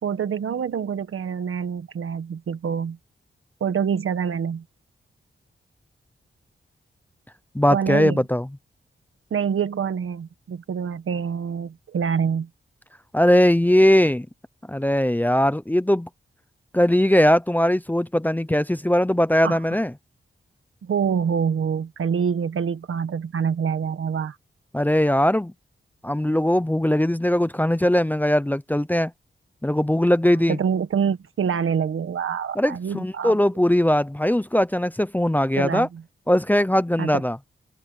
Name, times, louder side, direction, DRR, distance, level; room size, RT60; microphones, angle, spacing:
voice 1, 0.0-3.0 3.6-4.6 7.7-8.2 9.3-12.5 19.4-19.6 20.8-24.4 30.2-33.4 35.6-36.0 37.0-37.2, right 7 dB, 90° right, 1.4 m, -26 dB
voice 2, 7.5-8.5 13.1-14.3 14.7-16.1 16.7-19.9 24.7-25.5 26.0-29.1 29.6-30.6 32.6-35.9 36.3-37.4, left 1 dB, 10° left, 0.7 m, -20 dB
wide cardioid pair, 95°, 21 cm